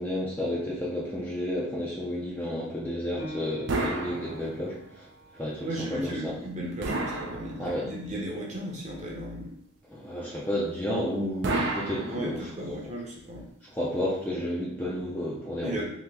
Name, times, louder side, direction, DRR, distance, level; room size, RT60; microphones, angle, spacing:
voice 1, 0.0-5.1 5.3-6.3 7.6-7.9 9.9-12.7 13.7-15.9, left 1 dB, 10° left, -6 dB, 0.5 m, -32 dB
Piano, 3.2-8.3 8.8-8.9 9.5-10.0, equal, 65° left, 1.2 m, -46 dB
sound 1, 3.7-4.9 6.8-8.0 11.4-12.7, right 2 dB, 50° right, 0.4 m, -31 dB
voice 2, 5.6-9.5 12.0-13.5 15.6-15.9, right 1 dB, 30° right, -3 dB, 0.8 m, -35 dB
3.0 x 2.8 x 3.4 m, 0.73 s
head